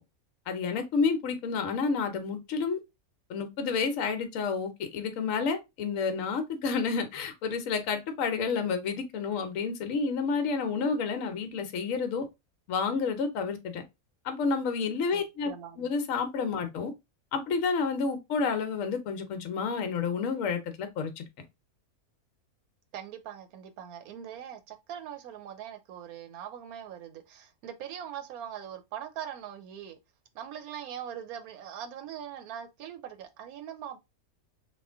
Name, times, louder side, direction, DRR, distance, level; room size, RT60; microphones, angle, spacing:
voice 1, 0.5-2.8 3.3-12.3 12.7-13.8 14.2-15.5 15.8-16.9 17.3-21.2, left 5 dB, 65° left, 1.1 m, -30 dB
voice 2, 15.1-15.8 22.9-30.0 30.3-34.0, right 9 dB, 85° right, 1.1 m, -41 dB
3.0 x 2.5 x 3.4 m
omnidirectional pair, 1.5 m